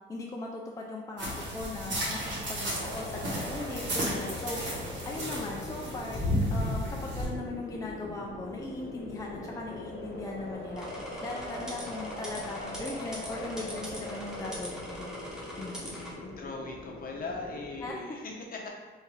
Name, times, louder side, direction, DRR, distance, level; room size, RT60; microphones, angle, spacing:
voice 1, 0.1-4.6 5.0-6.2 6.5-10.9 11.2-15.1 15.6-16.1 17.8-18.0, left 2 dB, 15° left, -1 dB, 0.4 m, -39 dB
sound 1, 1.2-7.2, equal, 65° right, 1.4 m, -33 dB
sound 2, 2.6-17.9, left 1 dB, 70° left, 1.0 m, -42 dB
sound 3, 10.8-16.1, equal, 5° right, 1.0 m, -43 dB
voice 2, 16.2-18.7, left 3 dB, 45° left, 0 dB, 0.7 m, -39 dB
3.6 x 2.6 x 3.2 m, 1.3 s
cardioid pair, 90°, 20 cm